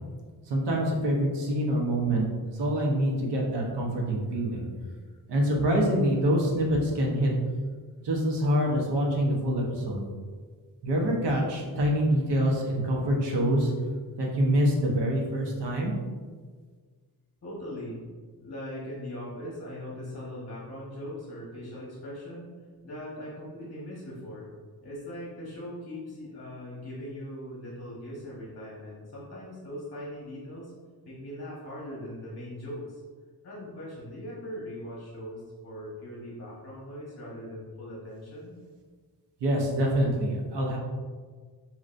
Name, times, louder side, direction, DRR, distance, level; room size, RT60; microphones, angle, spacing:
voice 1, 0.5-4.7 5.3-7.3 8.0-10.0 10.8-13.7 14.2-15.9 39.4-40.8, equal, 90° right, -1 dB, 1.0 m, -25 dB
voice 2, 17.4-18.0 18.4-22.5 22.8-24.5 24.8-30.7 31.0-33.0 33.4-38.6, left 1 dB, 40° left, -6 dB, 1.2 m, -40 dB
6.3 x 3.0 x 2.6 m, 1.5 s
wide cardioid pair, 110°, 40 cm